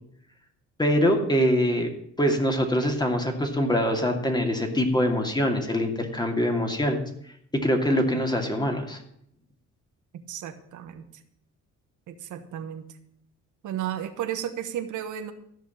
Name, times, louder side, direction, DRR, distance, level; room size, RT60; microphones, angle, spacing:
voice 1, 0.8-1.9 2.2-7.0 7.6-9.0, equal, 15° left, 3 dB, 2.5 m, -24 dB
voice 2, 10.3-11.0 12.1-12.9 13.6-15.3, right 10 dB, 75° right, 8 dB, 1.3 m, -33 dB
14.0 x 5.2 x 8.6 m, 0.71 s
cardioid pair, 90°, 30 cm